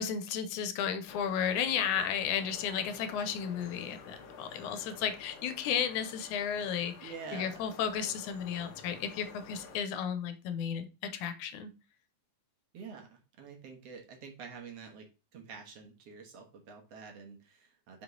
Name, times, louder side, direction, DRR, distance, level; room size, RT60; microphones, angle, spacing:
voice 1, 0.0-11.7, left 8 dB, 85° left, 10 dB, 2.3 m, -33 dB
sound 1, 1.1-9.8, left 5 dB, 60° left, 2.0 m, -51 dB
voice 2, 7.0-7.6 12.7-15.1 15.3-18.0, right 5 dB, 60° right, 2 dB, 2.1 m, -47 dB
5.3 x 5.2 x 3.8 m, 0.32 s
omnidirectional pair, 3.4 m